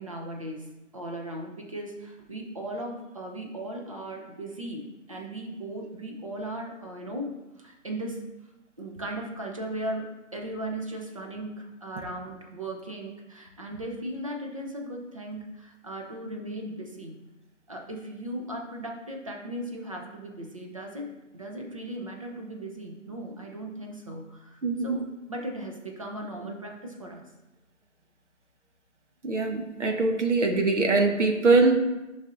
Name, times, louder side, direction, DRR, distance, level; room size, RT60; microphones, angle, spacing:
voice 1, 0.0-7.3 7.6-8.2 8.8-17.2 17.7-25.0 25.3-27.2, right 1 dB, 25° right, 1 dB, 0.7 m, -37 dB
voice 2, 24.6-25.0 29.2-31.8, right 3 dB, 65° right, 4 dB, 1.3 m, -22 dB
10.5 x 5.6 x 2.6 m, 1.0 s
hypercardioid pair, 170°, 38 cm